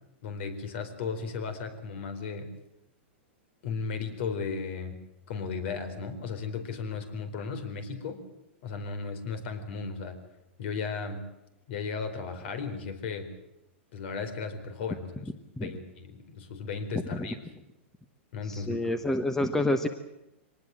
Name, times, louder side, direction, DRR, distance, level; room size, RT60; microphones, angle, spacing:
voice 1, 0.2-2.5 3.6-5.0 5.3-8.2 8.6-10.2 10.6-11.3 11.7-13.3 13.9-15.1 15.6-17.4 18.3-19.1, left 5 dB, 60° left, 9 dB, 4.3 m, -35 dB
voice 2, 18.5-19.9, left 1 dB, 5° left, 9 dB, 1.1 m, -28 dB
24.0 x 19.0 x 7.7 m, 0.89 s
hypercardioid pair, 135°, 7 cm